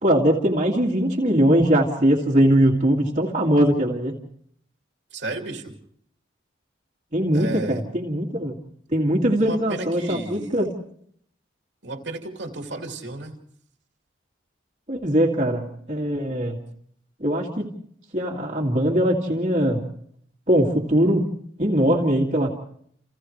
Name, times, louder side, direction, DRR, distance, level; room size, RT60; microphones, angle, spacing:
voice 1, 0.0-4.1 7.1-8.6 8.9-10.7 14.9-16.6 17.2-17.7 18.1-19.8 20.5-21.2 21.6-22.5, equal, 35° right, -3 dB, 2.4 m, -21 dB
voice 2, 5.1-5.8 7.3-7.8 9.4-10.6 11.8-13.4, right 2 dB, 65° right, 2 dB, 2.5 m, -33 dB
30.0 x 29.5 x 3.3 m, 0.65 s
head